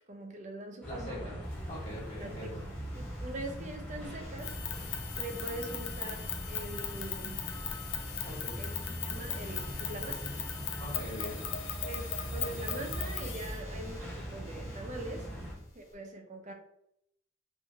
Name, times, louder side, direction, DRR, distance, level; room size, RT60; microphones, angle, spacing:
voice 1, 0.1-1.3 2.2-4.6 5.1-7.4 8.6-10.3 11.2-11.3 11.8-15.3 15.8-16.5, right 2 dB, 40° right, 4 dB, 0.4 m, -43 dB
voice 2, 0.8-1.4 1.7-2.6 8.2-8.6 10.8-11.4, equal, 35° left, -5 dB, 1.3 m, -42 dB
sound 1, 0.8-15.5, equal, 5° left, 0.8 m, -41 dB
sound 2, 1.4-15.9, left 1 dB, 50° left, 1.2 m, -53 dB
sound 3, 4.4-13.6, left 9 dB, 70° left, 0.4 m, -39 dB
2.8 x 2.5 x 2.7 m, 0.77 s
head